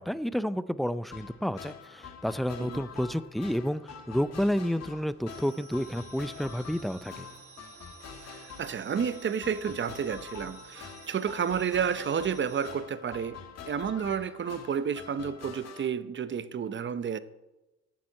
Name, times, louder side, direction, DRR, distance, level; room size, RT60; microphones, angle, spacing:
voice 1, 0.0-7.3, equal, ahead, 0.5 m, -30 dB
sound 1, 1.1-15.9, left 6 dB, 55° left, 2.0 m, -46 dB
sound 2, 5.3-12.7, right 6 dB, 80° right, 1.8 m, -53 dB
voice 2, 8.3-17.2, right 7 dB, 40° right, 0.8 m, -31 dB
11.0 x 7.5 x 8.4 m
cardioid pair, 90°, 30 cm